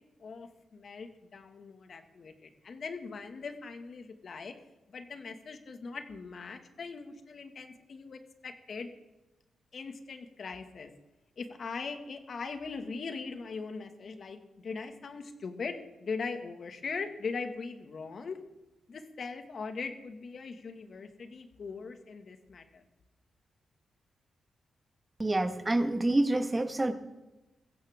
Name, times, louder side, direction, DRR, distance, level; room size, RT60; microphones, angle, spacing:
voice 1, 0.2-4.5 4.9-8.9 9.7-10.9 11.4-18.4 18.9-22.8, left 4 dB, 60° left, 6 dB, 2.0 m, -40 dB
voice 2, 25.2-26.9, right 2 dB, 20° right, 8 dB, 1.7 m, -27 dB
20.5 x 16.0 x 3.7 m, 1.0 s
cardioid pair, 70°, 0 cm